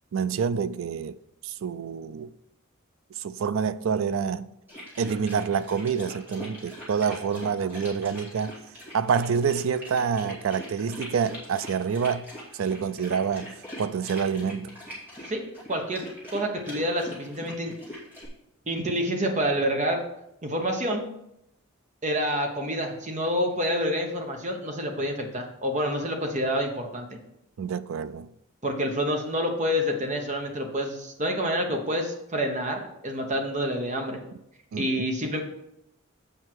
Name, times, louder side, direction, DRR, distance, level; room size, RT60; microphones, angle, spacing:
voice 1, 0.1-1.2 1.4-2.4 3.2-4.5 5.0-8.6 8.9-12.3 12.5-14.8 27.6-28.3 34.7-35.1, right 6 dB, 70° right, 0.4 m, -27 dB
sound 1, 4.7-18.3, equal, 10° right, 2.6 m, -42 dB
voice 2, 15.7-16.0 16.3-17.7 18.7-20.0 20.4-21.1 22.0-27.1 28.6-34.2 34.8-35.4, equal, 35° right, 1.2 m, -28 dB
7.9 x 5.4 x 4.7 m
head